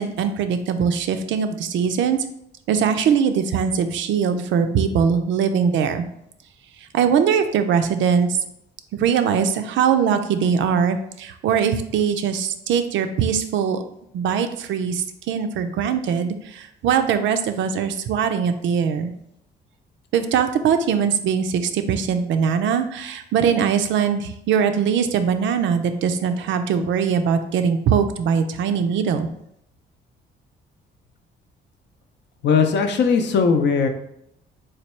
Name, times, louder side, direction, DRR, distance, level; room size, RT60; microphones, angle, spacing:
voice 1, 0.0-2.2 2.7-6.1 6.9-8.4 8.9-13.8 14.1-19.1 20.1-29.3, right 7 dB, 75° right, 8 dB, 0.4 m, -21 dB
voice 2, 32.4-33.9, left 5 dB, 65° left, 6 dB, 0.5 m, -18 dB
3.2 x 2.3 x 4.2 m, 0.75 s
cardioid pair, 90°, 20 cm